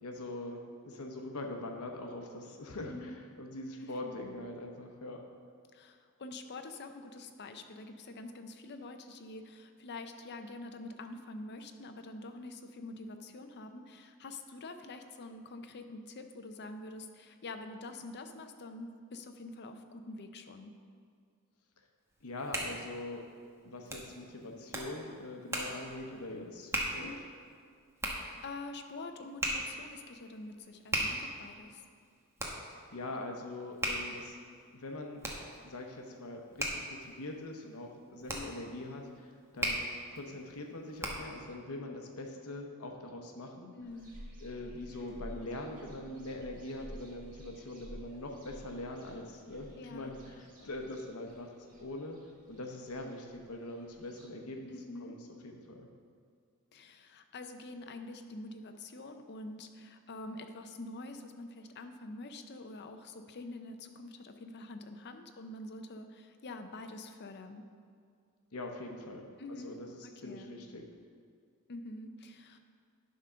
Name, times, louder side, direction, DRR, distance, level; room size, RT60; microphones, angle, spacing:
voice 1, 0.0-5.2 22.2-23.2 23.6-27.1 32.9-34.4 34.7-35.2 35.6-39.8 40.1-43.7 44.4-51.5 51.8-52.2 52.5-55.9 68.5-70.8, left 2 dB, 75° left, 3 dB, 0.9 m, -43 dB
voice 2, 2.8-3.2 3.8-4.1 5.7-20.7 26.9-27.2 28.2-31.8 38.3-38.7 43.8-44.1 49.8-50.1 54.7-55.1 56.7-67.6 69.4-69.8 70.2-70.6 71.7-72.6, left 2 dB, 50° left, 7 dB, 0.6 m, -46 dB
Hands, 22.1-41.4, right 1 dB, 10° right, 1.0 m, -39 dB
sound 1, 43.8-54.3, equal, 40° right, 1.7 m, -52 dB
11.0 x 3.8 x 5.6 m, 2.2 s
head